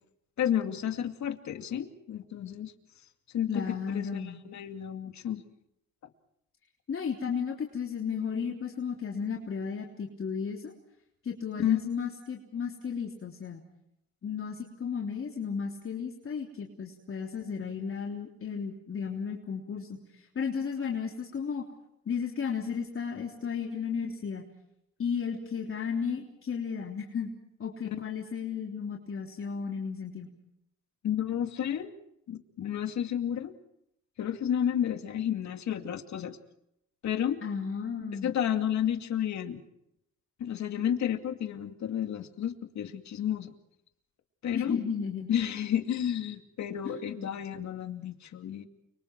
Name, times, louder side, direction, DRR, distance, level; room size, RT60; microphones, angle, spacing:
voice 1, 0.4-2.7 3.3-5.4 11.6-11.8 31.0-31.9 32.3-33.5 34.2-36.4 37.0-37.4 38.2-39.6 40.4-43.5 44.4-44.8 45.3-48.7, left 10 dB, 65° left, 6 dB, 2.4 m, -31 dB
voice 2, 3.5-4.4 6.9-10.7 11.2-13.6 14.2-20.0 20.3-21.6 22.0-24.4 25.0-27.3 27.6-30.3 37.4-38.3 44.5-45.3 46.8-47.4, left 6 dB, 45° left, 0 dB, 3.5 m, -34 dB
30.0 x 25.0 x 4.7 m, 0.80 s
cardioid pair, 90°, 30 cm